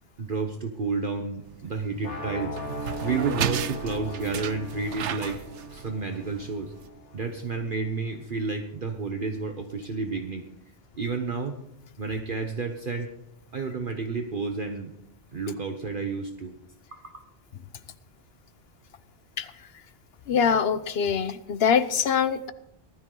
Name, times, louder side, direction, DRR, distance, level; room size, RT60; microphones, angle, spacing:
voice 1, 0.2-5.4 5.7-6.7 7.1-10.5 11.0-11.6 12.0-13.1 13.5-14.9 15.3-16.5 16.9-17.3, right 4 dB, 50° right, 5 dB, 1.1 m, -31 dB
sound 1, 1.4-6.9, right 9 dB, 90° right, 1.1 m, -34 dB
sound 2, 2.0-8.0, right 1 dB, 80° left, 3.1 m, -38 dB
voice 2, 20.3-22.5, left 7 dB, 60° left, 13 dB, 1.0 m, -24 dB
19.0 x 13.0 x 3.9 m, 0.86 s
omnidirectional pair, 1.2 m